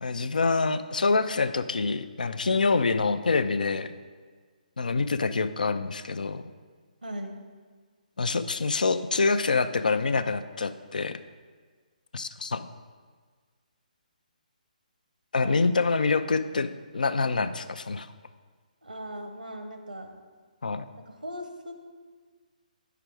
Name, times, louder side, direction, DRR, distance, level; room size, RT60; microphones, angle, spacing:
voice 1, 0.0-3.9 4.8-6.4 8.2-11.2 12.1-12.7 15.3-18.1 20.6-20.9, left 4 dB, 70° left, 11 dB, 0.4 m, -26 dB
voice 2, 7.0-7.4 15.4-15.6 18.8-20.1 21.1-21.7, equal, 85° right, 5 dB, 1.1 m, -38 dB
8.1 x 5.8 x 4.7 m, 1.5 s
figure-of-eight pair, 140°, 5 cm